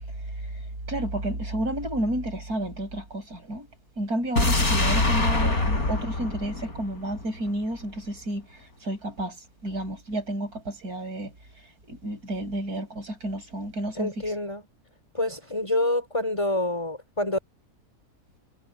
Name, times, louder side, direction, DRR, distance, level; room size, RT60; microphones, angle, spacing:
voice 1, 0.9-3.7 4.0-8.4 8.8-9.3 9.6-11.3 11.9-14.3, right 1 dB, 80° right, 8.1 m, -31 dB
sound 1, 4.4-7.5 7.8-7.9, left 2 dB, 70° left, 5.8 m, -24 dB
voice 2, 14.0-14.6 15.1-17.4, left 1 dB, 20° left, 4.2 m, -27 dB
omnidirectional pair, 1.6 m